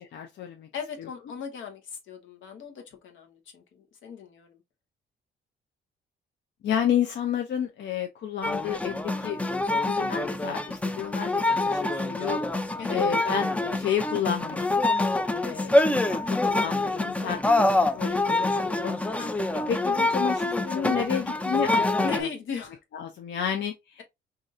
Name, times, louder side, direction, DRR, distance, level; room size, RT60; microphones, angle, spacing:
voice 1, 0.1-0.7 6.6-9.4 9.7-12.4 12.9-14.8 15.4-16.2 16.5-19.0 19.7-22.3 22.9-24.0, left 8 dB, 65° left, 0.6 m, -31 dB
voice 2, 0.7-4.6 12.8-13.0 19.2-19.5 22.0-22.8, left 6 dB, 80° left, 1.0 m, -37 dB
sound 1, 8.4-22.2, left 2 dB, 5° left, 0.3 m, -26 dB
4.0 x 2.6 x 2.4 m
cardioid pair, 90°, 20 cm